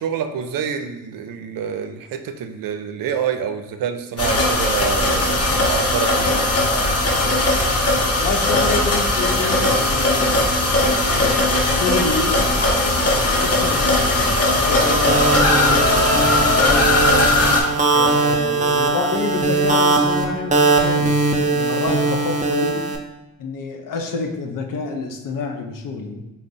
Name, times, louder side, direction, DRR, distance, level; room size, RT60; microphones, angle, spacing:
voice 1, 0.0-6.5, right 7 dB, 65° right, 7 dB, 0.5 m, -27 dB
sound 1, 4.2-17.6, left 2 dB, 40° left, 0.9 m, -18 dB
voice 2, 8.2-10.4 11.7-17.2 17.9-22.9 23.4-26.2, left 4 dB, 65° left, 4 dB, 0.6 m, -28 dB
sound 2, 14.8-23.0, right 3 dB, 20° right, 0.6 m, -20 dB
3.4 x 2.1 x 4.0 m, 1.0 s
supercardioid pair, 45°, 36 cm